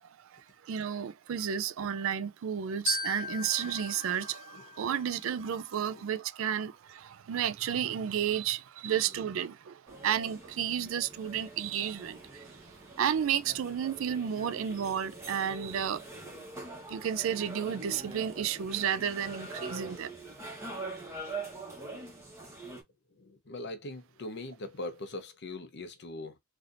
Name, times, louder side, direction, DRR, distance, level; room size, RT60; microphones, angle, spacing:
voice 1, 0.3-12.4 13.0-16.0 16.9-20.1, right 8 dB, 70° right, 0.4 m, -32 dB
Glockenspiel, 2.9-5.3, left 1 dB, 30° left, 1.2 m, -37 dB
voice 2, 4.5-5.1 5.9-6.1 9.0-9.1 19.6-19.8 20.5-20.6 23.2-26.4, left 2 dB, 55° left, 0.7 m, -42 dB
sound 1, 9.9-22.8, right 2 dB, 15° right, 1.1 m, -44 dB
3.3 x 2.6 x 2.5 m
head